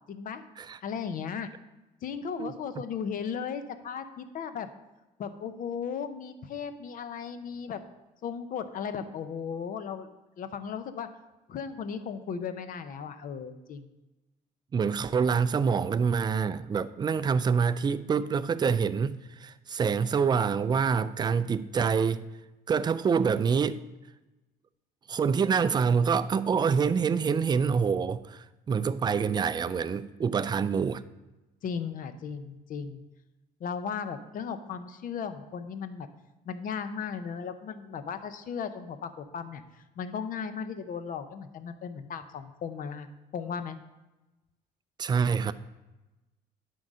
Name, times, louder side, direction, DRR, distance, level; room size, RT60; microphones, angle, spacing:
voice 1, 0.1-0.4 0.8-1.5 2.0-4.7 5.2-7.8 8.2-10.1 10.4-11.1 11.5-13.9 31.6-33.0 33.6-36.1 36.5-39.6 40.0-43.1 43.3-43.8, left 6 dB, 55° left, 0.8 m, -36 dB
voice 2, 14.7-22.2 22.7-23.8 25.1-31.0 45.0-45.5, right 6 dB, 25° right, 0.4 m, -26 dB
10.0 x 3.9 x 6.2 m
cardioid pair, 110°, 17 cm